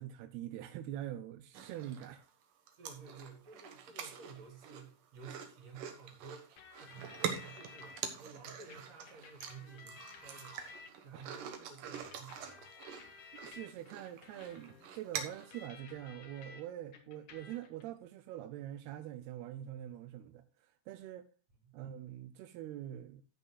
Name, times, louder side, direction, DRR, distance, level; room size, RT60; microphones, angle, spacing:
voice 1, 0.0-2.2 11.1-11.2 13.3-20.4 20.9-21.3 21.7-23.2, right 12 dB, 85° right, 2.7 m, -44 dB
sound 1, 1.5-2.3 2.7-15.7, right 7 dB, 65° right, 2.7 m, -45 dB
voice 2, 2.8-6.5 6.8-12.8 21.6-21.8, right 5 dB, 45° right, 4.4 m, -53 dB
sound 2, 6.6-8.0 8.7-11.3 11.9-16.6 16.9-17.8, left 5 dB, 60° left, 3.0 m, -55 dB
14.0 x 9.3 x 2.3 m
omnidirectional pair, 4.5 m